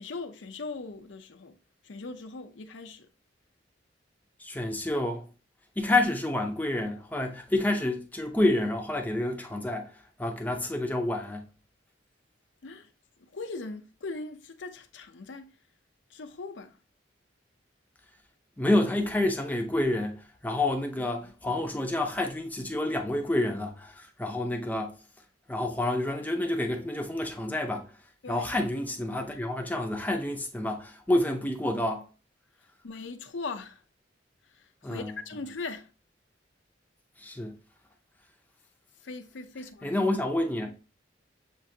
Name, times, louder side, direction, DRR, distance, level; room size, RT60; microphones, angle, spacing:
voice 1, 0.0-1.6 1.8-3.1 12.6-12.9 13.3-15.5 16.1-16.7 21.4-21.5 28.2-28.5 32.8-33.8 34.6-35.9 39.0-40.0, left 3 dB, 85° left, 0.7 m, -40 dB
voice 2, 4.4-5.3 5.8-9.9 10.2-11.4 18.6-24.9 25.5-27.9 28.3-32.0 34.8-35.2 37.2-37.6 39.8-40.8, left 1 dB, 10° left, 0.5 m, -28 dB
7.4 x 2.6 x 2.7 m
head